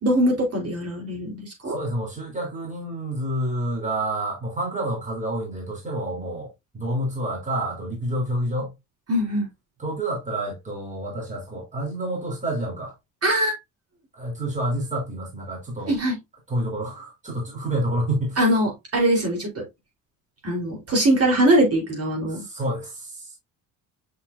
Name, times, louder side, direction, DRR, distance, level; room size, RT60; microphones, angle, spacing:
voice 1, 0.0-1.8 9.1-9.5 13.2-13.6 15.9-16.2 18.4-19.6 20.4-22.4, right 1 dB, 40° right, 4.2 m, -22 dB
voice 2, 1.7-8.7 9.8-12.9 14.1-15.9 16.5-18.4 22.3-23.4, right 1 dB, 20° right, 3.7 m, -28 dB
6.6 x 5.8 x 2.7 m
cardioid pair, 95°, 36 cm